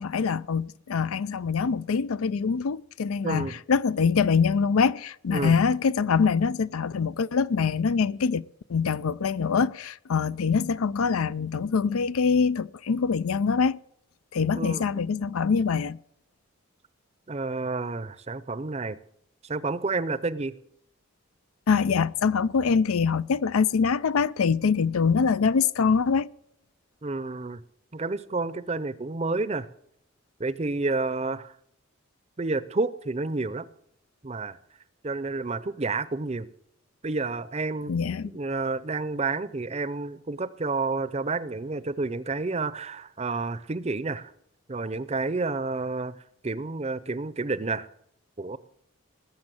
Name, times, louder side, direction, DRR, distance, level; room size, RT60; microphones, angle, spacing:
voice 1, 0.0-8.4 8.7-13.8 14.3-16.0 21.7-26.3 37.9-38.3, left 5 dB, 85° left, 0.5 m, -24 dB
voice 2, 3.2-3.6 5.3-5.6 14.6-14.8 17.3-19.0 19.4-20.5 27.0-27.6 27.9-29.7 30.4-31.5 32.4-33.7 34.2-34.6 35.0-36.5 37.0-37.9 38.2-44.3 44.7-46.1 46.4-47.9 48.4-48.6, right 3 dB, 30° right, 0.6 m, -30 dB
19.5 x 7.3 x 7.6 m
head